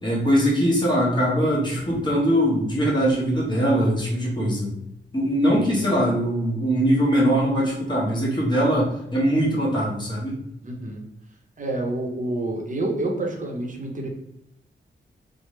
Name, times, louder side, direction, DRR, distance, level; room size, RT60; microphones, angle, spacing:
voice 1, 0.0-4.7 5.1-10.4, equal, 25° left, -6 dB, 1.2 m, -21 dB
voice 2, 5.6-5.9 10.6-11.0 11.6-14.1, right 2 dB, 40° right, 1 dB, 0.7 m, -28 dB
3.1 x 2.0 x 3.1 m, 0.79 s
wide cardioid pair, 80°, 20 cm